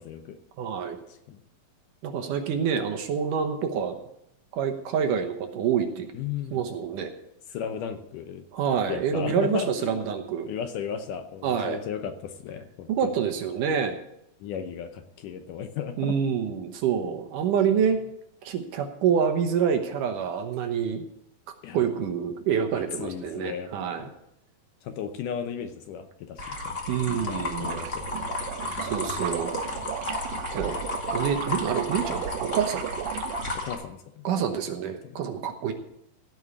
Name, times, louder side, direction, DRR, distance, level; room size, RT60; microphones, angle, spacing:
voice 1, 0.0-0.4 1.1-1.4 6.1-6.6 7.5-8.4 8.9-10.1 10.5-12.9 14.4-16.2 21.6-21.9 22.7-23.7 24.0-24.1 24.8-28.2 33.5-34.3 35.0-35.2, left 8 dB, 75° left, 8 dB, 2.2 m, -35 dB
voice 2, 0.6-1.0 2.0-4.0 4.5-6.1 6.5-7.1 8.5-10.5 11.4-11.8 12.9-14.0 16.0-18.0 18.4-21.0 21.7-24.1 26.9-27.8 28.8-29.5 30.5-30.8 31.1-33.0 34.2-35.7, right 7 dB, 70° right, 5 dB, 2.4 m, -27 dB
sound 1, 26.4-33.7, left 2 dB, 35° left, 1.2 m, -33 dB
sound 2, 27.6-33.5, right 12 dB, 85° right, 2.4 m, -36 dB
16.0 x 5.5 x 8.2 m, 0.78 s
omnidirectional pair, 4.2 m